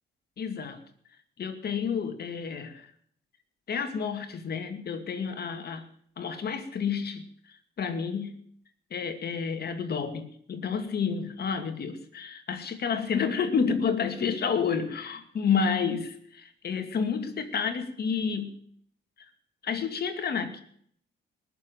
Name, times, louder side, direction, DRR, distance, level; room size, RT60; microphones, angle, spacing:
voice 1, 0.4-0.8 1.4-2.9 3.7-5.9 6.2-8.3 8.9-18.5 19.6-20.6, left 6 dB, 55° left, 7 dB, 2.4 m, -30 dB
20.0 x 7.2 x 9.1 m, 0.63 s
cardioid pair, 90°, 20 cm